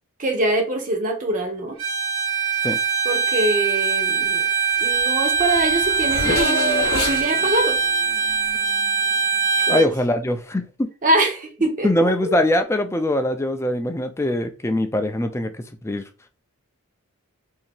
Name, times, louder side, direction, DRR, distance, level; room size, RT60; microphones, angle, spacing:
voice 1, 0.2-1.8 3.0-4.5 4.8-7.8 9.7-9.9 11.0-11.9 12.3-12.4, right 1 dB, 35° right, 0.8 m, -23 dB
Bowed string instrument, 1.8-9.9, right 6 dB, 90° right, 1.3 m, -22 dB
Race car auto racing / Accelerating revving vroom, 5.0-5.1 5.3-9.3, left 2 dB, 45° left, 0.8 m, -28 dB
voice 2, 9.7-10.9 11.8-16.0, left 1 dB, 10° left, 0.4 m, -22 dB
2.8 x 2.8 x 4.3 m
head